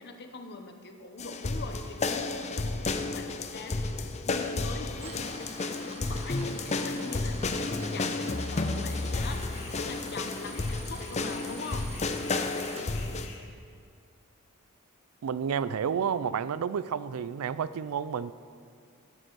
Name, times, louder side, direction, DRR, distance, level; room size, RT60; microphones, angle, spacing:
voice 1, 0.0-11.9, left 3 dB, 50° left, 6 dB, 0.9 m, -43 dB
sound 1, 1.2-13.3, left 3 dB, 30° left, 0.5 m, -32 dB
Tools, 4.9-12.9, right 3 dB, 30° right, 1.1 m, -47 dB
sound 2, 9.1-9.8 10.1-13.4, left 4 dB, 75° left, 1.8 m, -50 dB
voice 2, 15.2-18.3, right 7 dB, 90° right, 16 dB, 0.4 m, -30 dB
14.5 x 9.0 x 4.7 m, 2.2 s
head